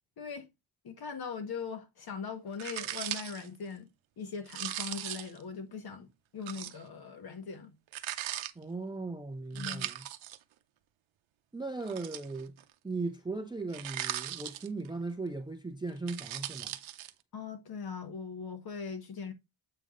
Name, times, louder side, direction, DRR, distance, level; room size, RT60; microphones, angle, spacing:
voice 1, 0.2-0.5 0.8-3.9 4.2-6.1 6.3-7.8 9.5-9.9 17.3-19.3, left 5 dB, 45° left, 1.4 m, -40 dB
sound 1, 2.6-3.5 4.5-5.4 6.5-6.8 7.9-8.5 9.6-10.4 11.8-12.6 13.7-14.9 15.9-17.1, right 13 dB, 65° right, 0.7 m, -38 dB
voice 2, 8.6-10.0 11.5-12.5 12.8-16.8, right 3 dB, 10° right, 0.4 m, -38 dB
7.7 x 3.5 x 3.7 m
cardioid pair, 130°, 49 cm